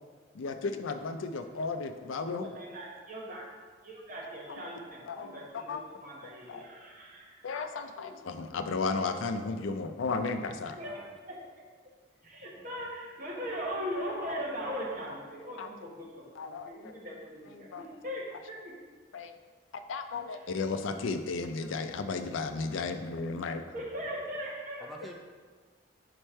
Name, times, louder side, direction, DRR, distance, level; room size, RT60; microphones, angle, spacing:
voice 1, 0.3-2.5 4.5-4.7 5.1-5.8 6.2-6.7 7.4-10.8 15.6-15.7 16.4-16.9 17.6-17.9 19.1-19.4 19.7-23.6, left 4 dB, 85° left, 7 dB, 0.4 m, -34 dB
voice 2, 2.4-3.4 3.8-7.4 7.7-8.1 10.8-11.7 12.2-18.6 23.7-25.1, equal, 45° right, -4 dB, 1.2 m, -40 dB
voice 3, 10.8-11.2 12.5-12.9 24.8-25.1, equal, ahead, -1 dB, 0.5 m, -49 dB
4.9 x 4.3 x 4.4 m, 1.5 s
head